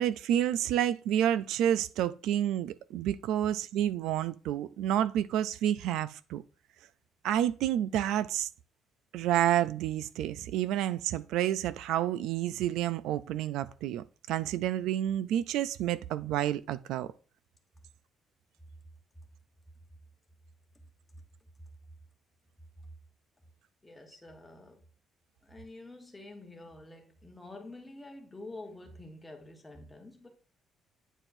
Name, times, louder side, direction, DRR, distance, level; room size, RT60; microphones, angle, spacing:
voice 1, 0.0-6.4 7.2-8.5 9.1-17.1, right 11 dB, 85° right, 0.3 m, -29 dB
voice 2, 23.8-24.9 25.4-30.3, left 2 dB, 10° left, 1.0 m, -48 dB
9.0 x 4.3 x 2.6 m
cardioid pair, 165°, 0 cm